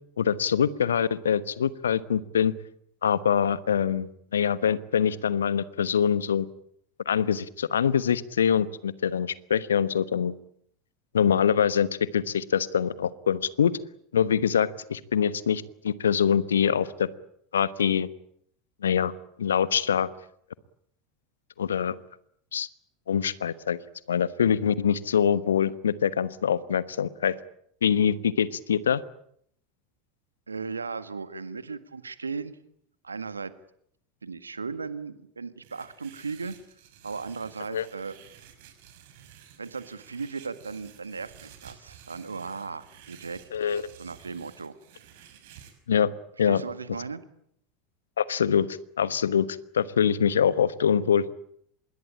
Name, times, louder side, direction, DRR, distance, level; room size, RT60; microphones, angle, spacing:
voice 1, 0.2-2.5 3.0-6.5 7.0-10.3 11.1-11.9 12.1-13.7 14.1-17.1 17.5-18.1 18.8-19.1 19.4-20.1 21.6-21.9 22.5-22.7 23.1-23.8 24.1-27.3 27.8-29.0 37.7-37.8 43.5-43.8 45.9-46.1 46.4-46.6 48.2-48.7 49.0-49.5 49.7-51.2, left 8 dB, 75° left, 17 dB, 1.2 m, -24 dB
voice 2, 30.5-32.6 33.0-33.5 34.2-36.6 37.0-38.2 39.6-43.4 44.0-44.8 46.4-47.2, right 4 dB, 85° right, 13 dB, 1.6 m, -36 dB
sound 1, 35.6-45.7, right 9 dB, 60° right, 6.0 m, -52 dB
26.5 x 21.5 x 8.8 m, 0.71 s
figure-of-eight pair, 80°, 0 cm